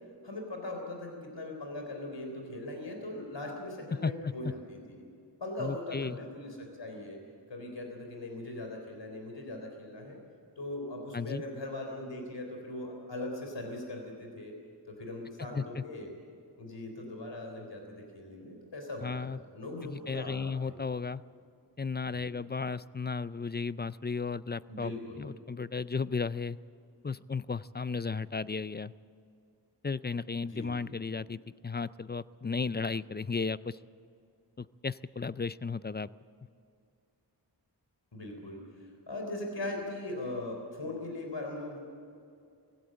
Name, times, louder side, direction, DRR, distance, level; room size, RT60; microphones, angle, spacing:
voice 1, 0.2-5.0 5.4-7.2 7.5-10.2 10.6-14.6 14.9-16.1 16.6-20.8 22.1-22.3 24.7-25.2 30.5-30.7 38.1-41.8, left 2 dB, 85° left, 2 dB, 3.8 m, -40 dB
voice 2, 4.0-4.3 5.6-6.2 11.1-11.4 15.5-15.8 19.0-19.4 19.8-21.2 21.8-24.9 25.2-26.6 27.0-28.9 29.8-33.8 34.6-36.1, left 4 dB, 25° left, 17 dB, 0.4 m, -34 dB
18.5 x 16.5 x 8.8 m, 2.4 s
wide cardioid pair, 60°, 42 cm